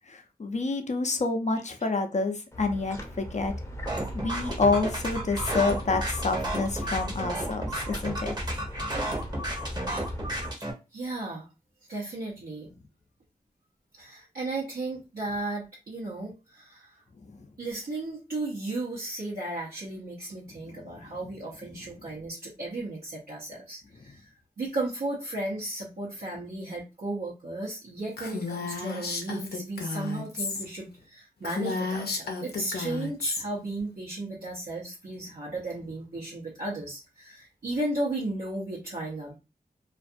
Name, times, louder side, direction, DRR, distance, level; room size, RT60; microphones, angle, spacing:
voice 1, 0.1-3.5 4.2-8.3 17.4-17.5 20.7-20.8, left 3 dB, 45° left, 6 dB, 0.6 m, -28 dB
sound 1, 2.5-10.5, equal, 20° left, 0.7 m, -37 dB
sound 2, 3.9-10.7, right 1 dB, 25° right, 0.9 m, -32 dB
voice 2, 10.9-11.5 11.9-12.7 14.0-17.0 17.6-39.4, right 2 dB, 70° right, -8 dB, 0.9 m, -35 dB
Female speech woman speaking, 28.2-30.7 31.0-31.1 31.4-33.4, left 4 dB, 90° left, 0.6 m, -32 dB
2.5 x 2.4 x 2.6 m, 0.28 s
cardioid pair, 45°, 16 cm